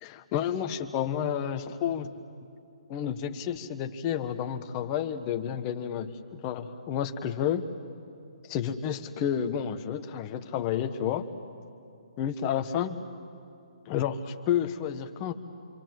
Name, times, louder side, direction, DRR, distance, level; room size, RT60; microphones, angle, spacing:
voice 1, 0.0-2.1 2.9-7.6 8.5-11.2 12.2-13.0 13.9-15.3, left 9 dB, 25° left, 7 dB, 1.2 m, -30 dB
26.5 x 26.0 x 7.7 m, 2.5 s
hypercardioid pair, 155°, 3 cm